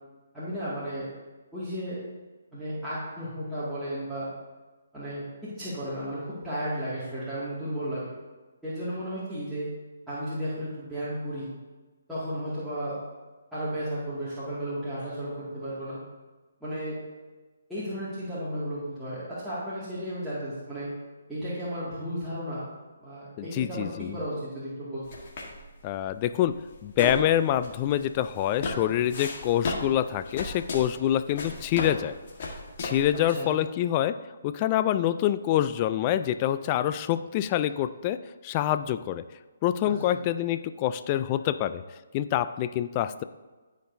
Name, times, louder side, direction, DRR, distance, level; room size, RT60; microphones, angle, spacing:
voice 1, 0.3-1.1 1.5-2.0 2.5-4.3 4.9-8.0 8.6-9.7 10.1-11.5 12.1-13.0 13.5-16.0 16.6-17.0 17.7-20.9 21.3-22.7 23.0-25.0 33.3-33.5 40.1-40.2, equal, ahead, -14 dB, 2.2 m, -34 dB
voice 2, 23.4-24.2 25.8-32.1 32.8-39.2 39.6-41.8 42.1-43.2, left 11 dB, 30° left, 12 dB, 0.3 m, -26 dB
sound 1, 25.0-33.3, left 3 dB, 50° left, 1.6 m, -35 dB
14.0 x 5.2 x 2.7 m, 1.3 s
hypercardioid pair, 145°, 0 cm